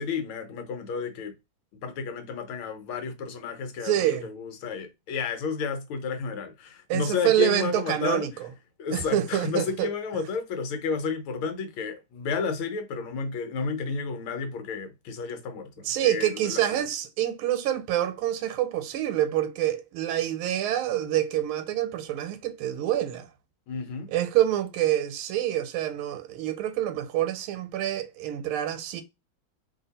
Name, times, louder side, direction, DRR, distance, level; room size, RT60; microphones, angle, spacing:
voice 1, 0.0-1.3 1.7-8.3 8.8-16.6 23.7-24.1, left 5 dB, 80° left, 1.7 m, -32 dB
voice 2, 3.8-4.3 6.9-8.5 8.9-9.9 15.8-23.3 24.1-29.0, right 12 dB, 85° right, 1.5 m, -27 dB
3.3 x 2.8 x 4.0 m
omnidirectional pair, 2.3 m